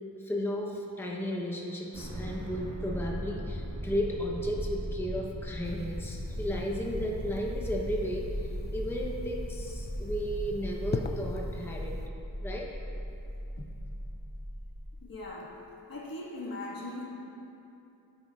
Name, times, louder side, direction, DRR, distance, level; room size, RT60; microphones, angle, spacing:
voice 1, 0.2-11.9 12.4-12.7, equal, 5° left, -2 dB, 0.9 m, -34 dB
sound 1, 1.9-15.0, equal, 40° right, 1.3 m, -38 dB
sound 2, 5.6-12.1, left 4 dB, 30° left, 0.4 m, -41 dB
voice 2, 15.0-15.5 15.9-17.1, left 2 dB, 65° left, -5 dB, 1.8 m, -39 dB
12.0 x 9.4 x 2.4 m, 2.8 s
wide cardioid pair, 80°, 37 cm